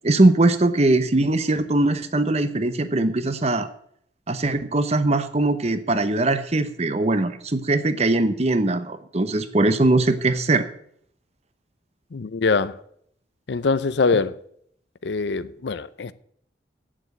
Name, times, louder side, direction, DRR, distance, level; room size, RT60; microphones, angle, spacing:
voice 1, 0.0-3.7 4.3-10.6, right 2 dB, 35° right, 0.9 m, -21 dB
voice 2, 12.1-12.8 13.5-14.4 15.0-16.1, left 4 dB, 75° left, 0.6 m, -23 dB
8.8 x 7.5 x 8.0 m
head